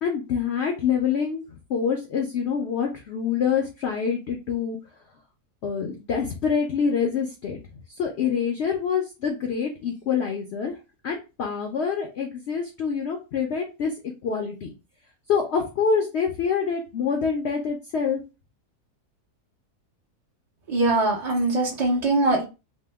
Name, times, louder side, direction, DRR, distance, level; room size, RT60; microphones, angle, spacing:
voice 1, 0.0-1.4 1.7-4.8 5.6-7.6 8.0-10.7 11.0-13.9 14.2-14.7 15.3-18.2, left 6 dB, 70° left, 2 dB, 0.6 m, -26 dB
voice 2, 20.7-22.4, right 2 dB, 45° right, -5 dB, 0.4 m, -22 dB
2.9 x 2.0 x 3.3 m, 0.29 s
omnidirectional pair, 1.7 m